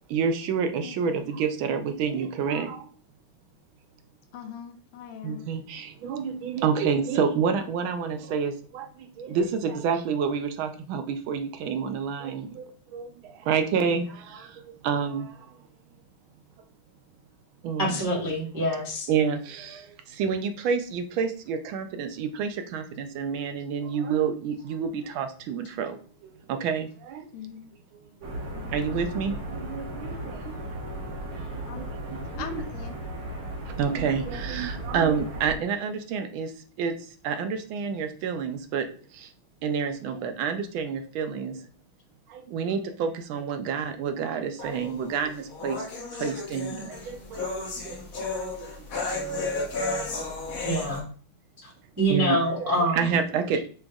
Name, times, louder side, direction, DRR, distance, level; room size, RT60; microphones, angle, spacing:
voice 1, 0.1-2.9 5.2-15.7 17.6-18.0 19.1-27.3 28.2-30.6 31.6-32.6 33.7-36.5 36.8-39.3 39.6-41.7 42.3-49.0 50.7-50.9 52.1-53.6, right 6 dB, 75° right, 7 dB, 1.3 m, -29 dB
voice 2, 0.8-1.3 4.3-5.5 27.3-27.7 28.5-28.7 31.7-31.9 32.4-33.0, left 8 dB, 80° left, 5 dB, 1.5 m, -41 dB
voice 3, 17.8-19.1 50.6-51.0 51.6-51.7 52.0-53.1, equal, 35° right, -4 dB, 0.3 m, -25 dB
sound 1, 28.2-35.6, right 1 dB, 55° right, 1.4 m, -36 dB
sound 2, 44.6-51.0, left 3 dB, 55° left, 1.1 m, -33 dB
6.0 x 3.3 x 2.3 m, 0.43 s
omnidirectional pair, 2.4 m